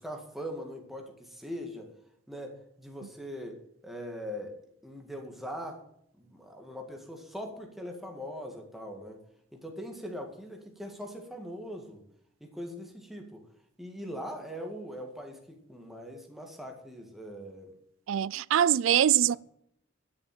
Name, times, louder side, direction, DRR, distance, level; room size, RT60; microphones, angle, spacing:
voice 1, 0.0-1.9 2.3-4.5 4.8-5.8 6.2-9.2 9.5-12.0 12.4-13.4 13.8-17.7, equal, ahead, 2.0 m, -41 dB
voice 2, 18.1-19.4, right 10 dB, 70° right, 0.3 m, -23 dB
12.0 x 7.3 x 7.7 m
head